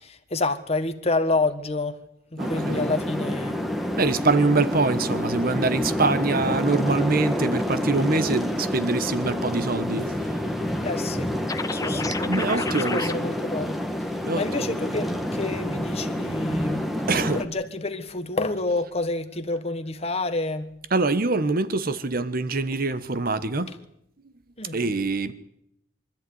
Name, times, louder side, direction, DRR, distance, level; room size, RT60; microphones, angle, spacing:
voice 1, 0.0-1.9 2.3-3.6 10.8-11.3 11.7-13.8 14.3-16.9 17.3-20.7 24.6-24.8, left 2 dB, 35° left, 1.5 m, -28 dB
sound 1, 2.4-17.5, left 1 dB, ahead, 1.5 m, -28 dB
voice 2, 2.4-2.9 4.0-10.3 12.2-13.3 14.3-14.7 17.1-17.4 20.9-23.7 24.7-25.3, right 3 dB, 50° right, 1.2 m, -24 dB
sound 2, 11.5-13.1, left 4 dB, 20° left, 1.0 m, -31 dB
24.5 x 13.5 x 9.6 m
head